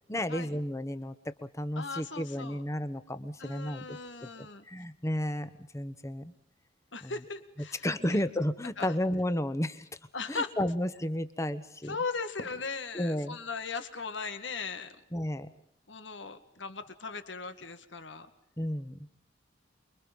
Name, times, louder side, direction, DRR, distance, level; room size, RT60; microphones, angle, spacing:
voice 1, 0.1-4.3 4.7-6.3 7.0-7.1 7.8-9.8 10.3-12.0 12.9-13.4 15.1-15.5 18.6-19.0, left 1 dB, 15° left, 11 dB, 1.3 m, -32 dB
voice 2, 1.8-2.6 3.4-4.7 6.9-8.2 8.8-8.9 10.1-10.5 11.8-14.9 15.9-18.3, left 4 dB, 75° left, 9 dB, 1.9 m, -38 dB
29.0 x 23.0 x 5.4 m, 0.69 s
head